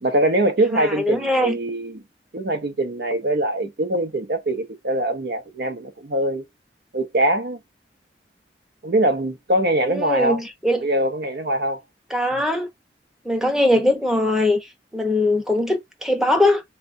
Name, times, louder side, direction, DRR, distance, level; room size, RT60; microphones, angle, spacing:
voice 1, 0.0-2.0 2.3-6.4 6.9-7.6 8.8-10.4 10.8-11.8 12.3-12.4, right 1 dB, 65° right, 0.7 m, -23 dB
voice 2, 0.7-1.6 9.8-10.9 12.1-12.7 13.2-16.6, left 1 dB, 5° right, 0.7 m, -21 dB
4.3 x 2.4 x 2.5 m
head